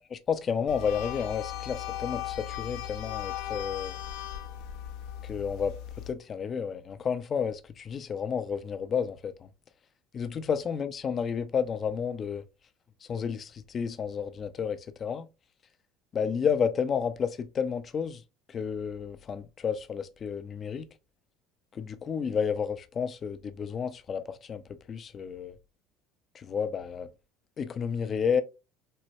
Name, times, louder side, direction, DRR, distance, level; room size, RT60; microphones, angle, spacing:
voice 1, 0.1-4.0 5.2-5.8 6.1-9.5 10.1-12.4 13.0-15.3 16.1-18.2 18.5-20.9 21.7-24.6 24.9-25.6 26.3-27.1 27.6-28.4, left 7 dB, 35° left, 0.4 m, -31 dB
sound 1, 0.7-6.1, left 11 dB, 75° left, 0.6 m, -37 dB
4.3 x 2.1 x 2.7 m
supercardioid pair, 115°, 0 cm